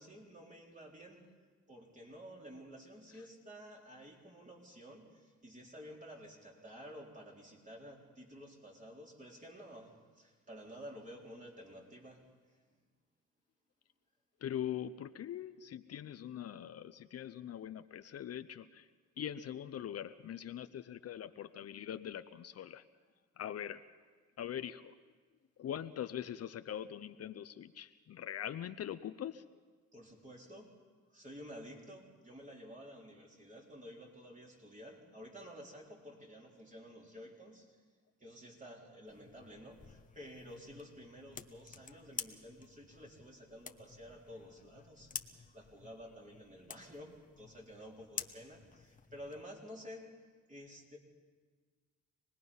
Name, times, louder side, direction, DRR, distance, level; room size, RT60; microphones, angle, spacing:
voice 1, 0.0-1.3 1.7-12.8 29.9-30.8 31.1-37.8 38.2-45.1 45.5-50.2 50.5-51.0, equal, 25° right, -1 dB, 4.0 m, -52 dB
voice 2, 14.4-18.9 19.2-22.8 23.4-23.8 24.4-25.0 25.6-29.4, left 10 dB, 55° left, 10 dB, 0.7 m, -42 dB
sound 1, 39.1-49.4, left 5 dB, 25° left, 1.0 m, -50 dB
26.0 x 20.0 x 5.5 m, 1.5 s
cardioid pair, 90°, 30 cm